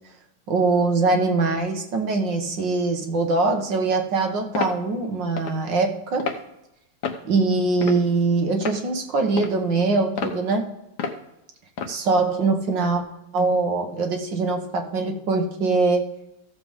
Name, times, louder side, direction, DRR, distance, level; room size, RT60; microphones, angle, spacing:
voice 1, 0.5-6.3 7.2-10.7 11.9-13.0 13.3-16.1, right 3 dB, 60° right, 4 dB, 1.9 m, -22 dB
sound 1, 4.5-4.8 5.4-5.6 6.2-6.4 7.0-7.3 7.8-8.2 8.6-8.8 9.4-9.6 10.2-10.4 11.0-11.2 11.8-12.0, left 5 dB, 55° left, 1.5 m, -29 dB
15.5 x 7.1 x 3.6 m, 0.87 s
omnidirectional pair, 2.4 m